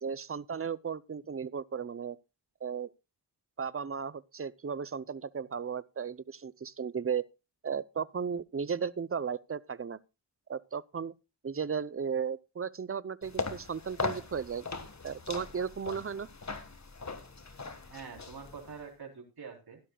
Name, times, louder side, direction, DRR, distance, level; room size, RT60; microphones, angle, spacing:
voice 1, 0.0-2.2 2.6-2.9 3.6-7.2 7.6-10.0 10.5-11.1 11.4-14.7 15.0-16.3, right 6 dB, 30° right, 0.7 m, -35 dB
sound 1, 13.2-18.8, left 4 dB, 40° left, 1.7 m, -39 dB
voice 2, 17.8-19.8, right 5 dB, 60° right, 3.9 m, -46 dB
16.0 x 12.0 x 2.4 m
cardioid pair, 55°, 43 cm